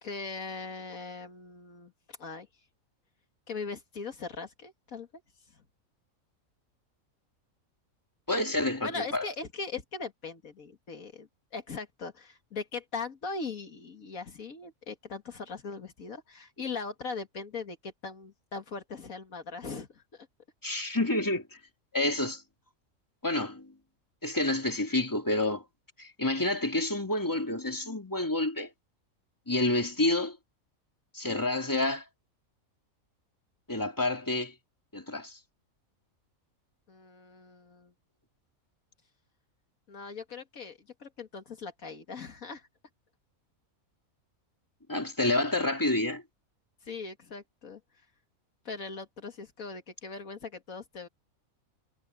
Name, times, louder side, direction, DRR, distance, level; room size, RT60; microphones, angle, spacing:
voice 1, 0.0-2.5 3.5-5.1 8.8-20.3 36.9-37.9 39.9-42.7 46.8-47.8 48.7-51.1, left 4 dB, 75° left, 2.3 m, -40 dB
voice 2, 8.3-9.3 20.6-21.6 21.9-22.4 23.2-23.7 24.2-25.6 26.0-28.7 29.5-30.4 31.1-32.0 33.7-34.5 34.9-35.4 44.9-46.2, left 2 dB, 15° left, 2.9 m, -29 dB
omnidirectional pair, 1.5 m